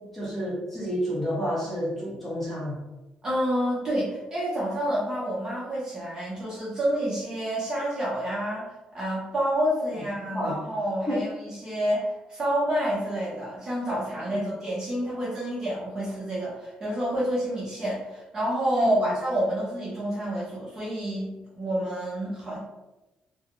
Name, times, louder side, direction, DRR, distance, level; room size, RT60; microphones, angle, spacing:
voice 1, 0.1-2.8 10.2-10.6 11.1-11.2 14.3-14.4 18.7-19.1, equal, 5° left, -8 dB, 1.0 m, -30 dB
voice 2, 3.2-22.6, equal, 25° right, -7 dB, 0.8 m, -28 dB
2.5 x 2.2 x 3.7 m, 1.0 s
cardioid pair, 160°, 3 cm